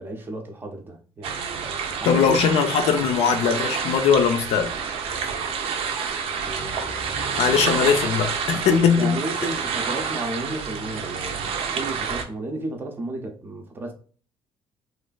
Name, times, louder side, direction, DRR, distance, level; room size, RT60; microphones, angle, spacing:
voice 1, 0.0-1.7 2.0-2.4 6.4-7.4 8.5-13.9, right 2 dB, 20° right, 0.5 m, -33 dB
sound 1, 1.2-12.2, right 6 dB, 75° right, 0.5 m, -28 dB
voice 2, 2.1-4.7 7.4-9.1, left 7 dB, 75° left, 0.5 m, -20 dB
3.1 x 2.4 x 2.2 m
cardioid pair, 175°, 10 cm